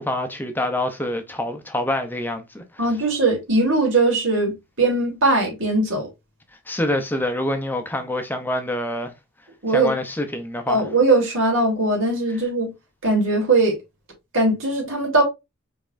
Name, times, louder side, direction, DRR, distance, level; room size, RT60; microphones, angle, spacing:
voice 1, 0.0-2.6 6.7-9.1 9.7-10.8, left 1 dB, 10° left, 0.6 m, -26 dB
voice 2, 2.8-6.1 9.6-9.9 10.7-12.7 13.0-13.8 14.3-15.2, right 2 dB, 75° right, 2.7 m, -20 dB
5.2 x 3.5 x 2.5 m
head